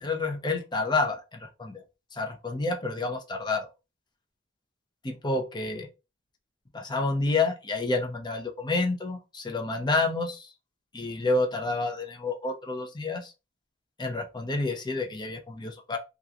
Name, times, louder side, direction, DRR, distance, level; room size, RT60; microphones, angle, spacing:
voice 1, 0.0-1.8 2.1-3.7 5.0-5.9 6.7-10.5 10.9-13.3 14.0-16.0, left 3 dB, 25° left, 0.6 m, -29 dB
2.9 x 2.4 x 2.4 m
head